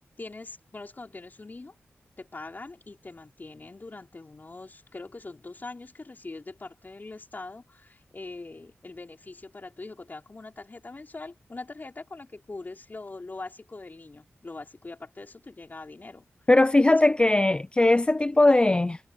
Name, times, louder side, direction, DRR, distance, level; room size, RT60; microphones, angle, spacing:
voice 1, 0.0-1.7 2.2-16.5 16.9-17.2 18.3-18.4, left 3 dB, 40° left, 4.6 m, -42 dB
voice 2, 16.5-19.0, left 2 dB, 20° left, 0.4 m, -20 dB
cardioid pair, 65°, 5 cm